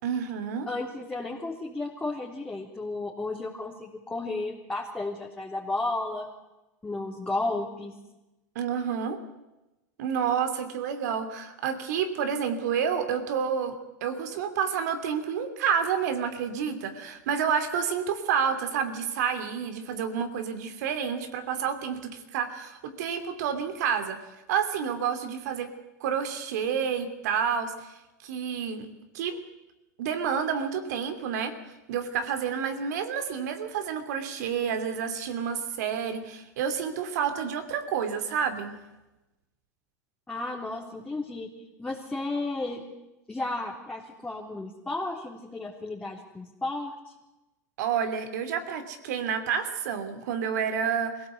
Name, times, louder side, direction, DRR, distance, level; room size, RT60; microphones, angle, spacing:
voice 1, 0.0-0.7 8.5-9.2 10.0-13.7 14.0-24.2 24.5-25.7 26.0-27.9 28.2-28.9 29.1-29.4 30.0-31.5 31.9-38.7 47.8-51.3, right 7 dB, 70° right, 8 dB, 2.8 m, -29 dB
voice 2, 0.7-6.3 6.8-8.0 40.3-41.5 41.8-42.8 43.3-46.9, left 2 dB, 10° left, -3 dB, 3.6 m, -33 dB
23.5 x 16.5 x 8.2 m, 1.0 s
hypercardioid pair, 95°, 9 cm